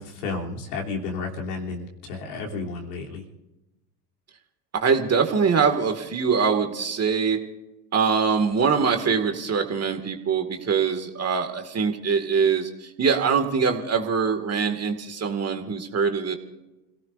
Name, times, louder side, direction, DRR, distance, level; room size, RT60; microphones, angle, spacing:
voice 1, 0.0-3.3, left 4 dB, 70° left, -1 dB, 3.4 m, -32 dB
voice 2, 4.7-7.4 7.9-16.4, right 5 dB, 30° right, 6 dB, 2.2 m, -23 dB
29.5 x 17.5 x 2.6 m, 1.0 s
hypercardioid pair, 70°, 48 cm